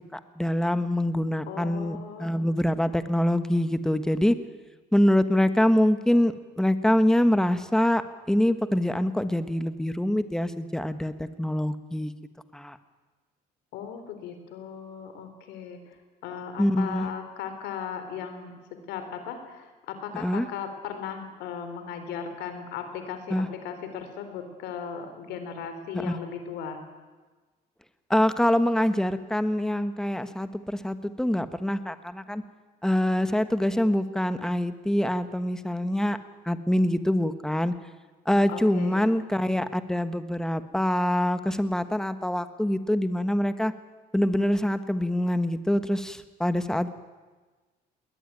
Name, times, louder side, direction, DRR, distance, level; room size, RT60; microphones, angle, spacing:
voice 1, 0.1-4.4 4.9-12.1 12.5-12.8 16.6-17.1 20.1-20.5 23.3-23.5 26.0-26.2 28.1-32.4 32.8-36.2 36.4-37.7 38.2-43.7 44.1-46.9, left 1 dB, 5° left, 11 dB, 1.4 m, -25 dB
voice 2, 1.5-2.3 13.7-16.0 16.2-26.8 38.5-39.1, left 7 dB, 90° left, 8 dB, 3.8 m, -37 dB
20.5 x 20.0 x 9.2 m, 1.3 s
cardioid pair, 110°, 17 cm